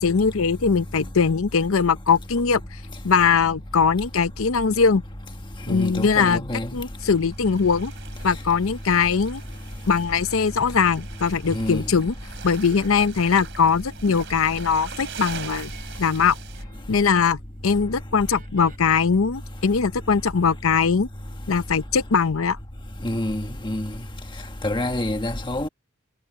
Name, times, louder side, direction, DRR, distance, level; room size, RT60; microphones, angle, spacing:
voice 1, 0.0-2.6 3.0-5.0 5.7-6.4 6.7-7.9 8.2-9.4 9.9-12.1 12.4-15.7 16.0-16.4 16.9-21.1 21.5-22.6, left 5 dB, 75° left, 0.6 m, -21 dB
voice 2, 5.7-6.7 11.5-11.8 23.0-23.9 24.6-25.7, left 1 dB, 20° left, 1.5 m, -27 dB
sound 1, 7.0-16.6, right 6 dB, 55° right, 3.4 m, -42 dB
Guitar, 15.3-17.5 17.8-20.1, right 5 dB, 40° right, 3.8 m, -53 dB
head